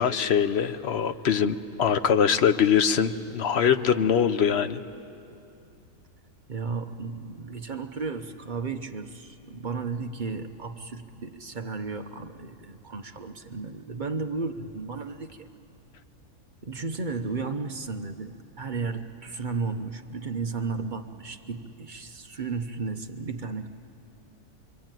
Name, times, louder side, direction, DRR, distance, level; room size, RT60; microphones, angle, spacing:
voice 1, 0.0-4.8, left 7 dB, 50° left, 11 dB, 0.9 m, -23 dB
voice 2, 6.5-15.5 16.6-23.7, right 4 dB, 40° right, 6 dB, 0.8 m, -34 dB
27.0 x 23.0 x 9.1 m, 2.7 s
omnidirectional pair, 1.7 m